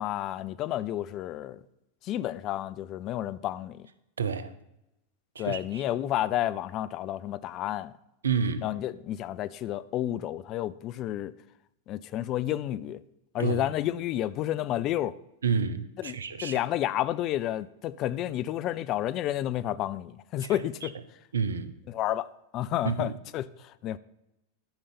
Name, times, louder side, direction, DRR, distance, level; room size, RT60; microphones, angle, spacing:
voice 1, 0.0-1.6 2.0-3.9 5.4-7.9 8.6-11.3 11.9-13.0 13.3-15.2 16.0-16.2 16.4-21.0 21.9-24.0, left 13 dB, 35° left, 0.5 m, -31 dB
voice 2, 4.2-4.5 5.3-5.8 8.2-8.6 13.4-13.6 15.4-16.6 20.4-20.9 21.3-21.7 22.8-23.2, right 6 dB, 70° right, 0.8 m, -30 dB
12.0 x 5.4 x 7.0 m
figure-of-eight pair, 90°, 0 cm